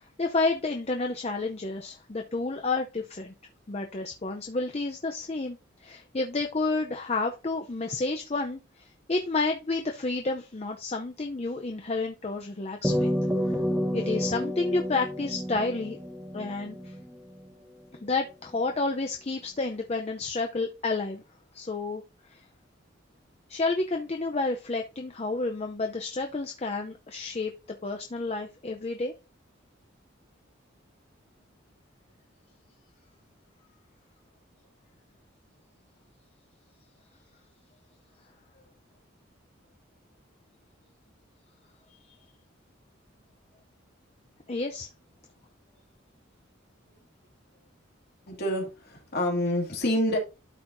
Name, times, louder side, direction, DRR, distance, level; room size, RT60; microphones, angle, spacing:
voice 1, 0.2-3.3 3.7-13.1 13.9-16.0 16.3-16.9 18.0-21.2 21.5-22.0 22.3-22.4 23.5-27.5 27.8-29.1 44.5-44.9, left 3 dB, 30° left, 4 dB, 0.5 m, -30 dB
sound 1, 12.8-17.5, equal, 5° right, 1.0 m, -30 dB
voice 2, 48.3-50.2, left 1 dB, 50° left, 0 dB, 2.4 m, -27 dB
12.5 x 4.4 x 2.6 m, 0.29 s
head